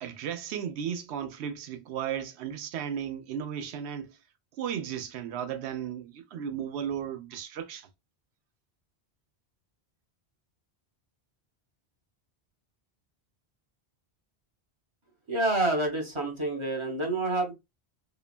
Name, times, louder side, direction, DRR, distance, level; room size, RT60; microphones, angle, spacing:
voice 1, 0.0-4.2 4.6-7.9, right 8 dB, 85° right, 0.8 m, -35 dB
voice 2, 15.3-17.5, right 2 dB, 35° right, 0.7 m, -28 dB
2.9 x 2.1 x 2.4 m
omnidirectional pair, 1.1 m